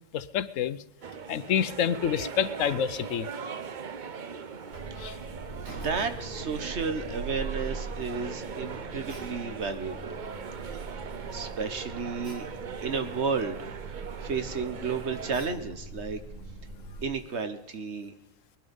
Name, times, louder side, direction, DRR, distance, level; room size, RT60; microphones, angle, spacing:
voice 1, 0.1-0.8 1.3-3.3 5.0-5.2, left 8 dB, 80° left, 16 dB, 1.1 m, -28 dB
sound 1, 1.0-15.6, right 6 dB, 45° right, 0.8 m, -40 dB
Alarm, 4.7-17.1, right 3 dB, 90° right, 3.2 m, -42 dB
voice 2, 5.8-10.2 10.6-11.0 11.3-12.4 12.8-16.2 17.0-18.1, right 5 dB, 60° right, 9 dB, 1.5 m, -33 dB
20.5 x 12.0 x 5.3 m, 0.90 s
omnidirectional pair, 1.3 m